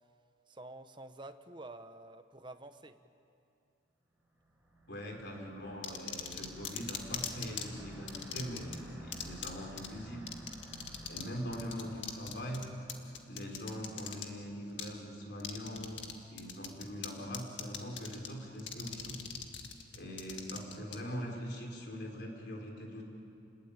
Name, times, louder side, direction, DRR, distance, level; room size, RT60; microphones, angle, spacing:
voice 1, 0.5-3.0 20.5-20.6, right 2 dB, 25° right, 9 dB, 1.0 m, -49 dB
sound 1, 4.5-13.1, right 1 dB, 10° right, 4.3 m, -52 dB
voice 2, 4.9-10.2 11.1-12.7 13.3-16.0 16.3-19.2 19.9-23.0, equal, 60° left, 1 dB, 4.7 m, -42 dB
sound 2, 5.8-7.7 8.1-8.8 9.1-9.5 9.8-9.9 10.3-11.3 11.5-14.3 14.8-14.9 15.4-16.1 16.4-17.1 17.3-18.3 18.6-21.0, left 8 dB, 75° left, 1.8 m, -40 dB
28.5 x 20.5 x 8.9 m, 2.7 s
head